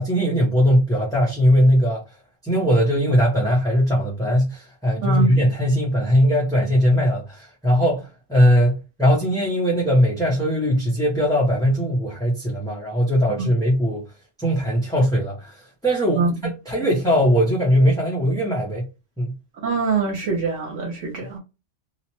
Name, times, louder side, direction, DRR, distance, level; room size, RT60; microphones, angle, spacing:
voice 1, 0.0-2.0 2.4-14.1 14.4-16.3 16.7-18.9 19.2-19.4, equal, 5° left, 0.5 m, -20 dB
voice 2, 19.6-21.4, right 4 dB, 85° right, 1.2 m, -24 dB
2.9 x 2.0 x 3.0 m
omnidirectional pair, 1.2 m